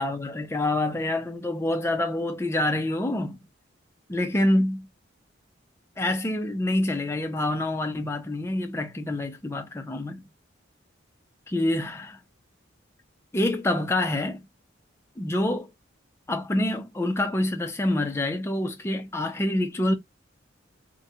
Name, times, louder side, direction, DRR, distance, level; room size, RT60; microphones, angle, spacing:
voice 1, 0.0-3.4 4.1-4.9 6.0-10.2 11.5-12.2 13.3-14.4 15.2-15.7 16.3-19.9, left 1 dB, 15° left, 0.4 m, -26 dB
2.5 x 2.1 x 2.6 m
head